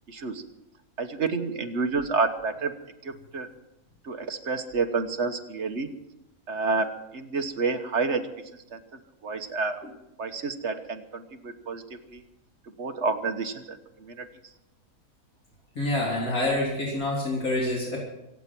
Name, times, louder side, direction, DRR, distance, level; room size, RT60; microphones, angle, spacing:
voice 1, 0.1-0.4 1.0-2.7 3.0-3.5 4.0-5.9 6.5-8.3 8.7-8.8 9.2-9.8 10.2-12.2 12.8-14.3, right 4 dB, 50° right, 6 dB, 1.5 m, -29 dB
voice 2, 15.8-18.0, left 1 dB, 65° left, -4 dB, 3.8 m, -27 dB
25.0 x 8.5 x 6.1 m, 0.92 s
omnidirectional pair, 1.6 m